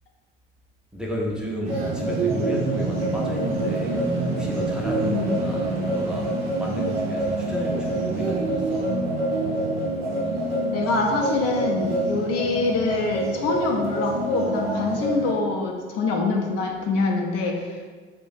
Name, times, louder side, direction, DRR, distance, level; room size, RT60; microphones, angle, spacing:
voice 1, 0.9-4.0 4.3-8.8, equal, 5° right, -3 dB, 0.6 m, -32 dB
sound 1, 1.6-15.3, right 2 dB, 85° right, 0.5 m, -26 dB
voice 2, 5.0-5.4 10.7-17.9, left 3 dB, 55° left, 1 dB, 0.5 m, -25 dB
2.4 x 2.1 x 3.8 m, 1.4 s
hypercardioid pair, 55°, 29 cm